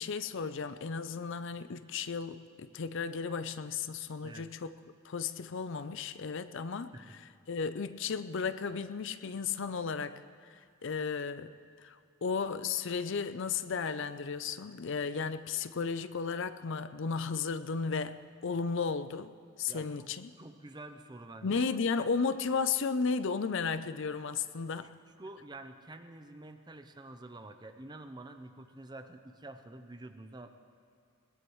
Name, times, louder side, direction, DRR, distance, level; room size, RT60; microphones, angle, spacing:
voice 1, 0.0-4.7 5.0-6.9 7.5-10.2 10.5-11.5 11.8-12.0 12.2-19.3 19.6-20.3 21.4-25.0, left 5 dB, 60° left, 12 dB, 0.5 m, -34 dB
voice 2, 19.7-21.7 24.8-24.9 25.2-30.5, right 2 dB, 20° right, 8 dB, 0.7 m, -48 dB
21.5 x 20.5 x 3.2 m, 2.3 s
head